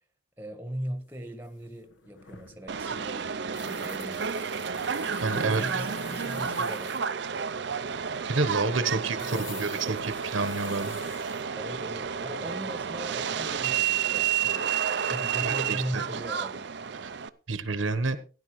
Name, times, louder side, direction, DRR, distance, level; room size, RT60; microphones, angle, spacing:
voice 1, 0.4-4.3 5.4-7.0 8.4-10.0 11.5-16.7, equal, 10° right, 8 dB, 1.2 m, -39 dB
sound 1, 1.1-1.2 1.4-7.1 9.2-11.4 13.6-13.7 15.3-15.9 16.2-16.3, left 4 dB, 65° left, 1.2 m, -46 dB
Subway metro underground, 2.7-17.3, right 7 dB, 55° right, 0.5 m, -31 dB
voice 2, 5.2-5.8 8.3-11.0 15.4-16.0 17.0-17.1 17.5-18.2, right 3 dB, 75° right, 12 dB, 1.1 m, -29 dB
16.0 x 10.5 x 3.1 m, 0.36 s
head